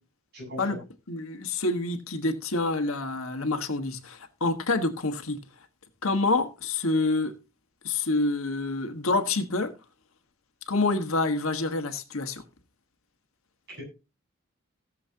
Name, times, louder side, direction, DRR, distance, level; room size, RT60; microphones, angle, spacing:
voice 1, 0.3-0.8 13.7-13.8, equal, 50° right, 7.1 m, -39 dB
voice 2, 1.1-5.4 6.0-7.3 7.8-9.7 10.7-12.4, left 3 dB, 80° left, 1.4 m, -27 dB
18.0 x 7.5 x 2.8 m
head